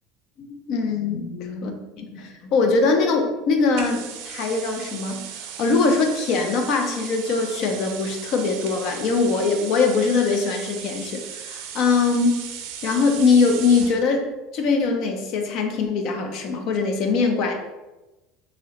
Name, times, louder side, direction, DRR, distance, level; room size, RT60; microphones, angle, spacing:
voice 1, 0.4-5.2 5.6-12.4 12.8-17.6, left 4 dB, 55° left, 4 dB, 0.5 m, -22 dB
sound 1, 3.7-14.0, right 8 dB, 70° right, 0.4 m, -37 dB
3.0 x 2.8 x 2.9 m, 1.1 s
supercardioid pair, 120°, 0 cm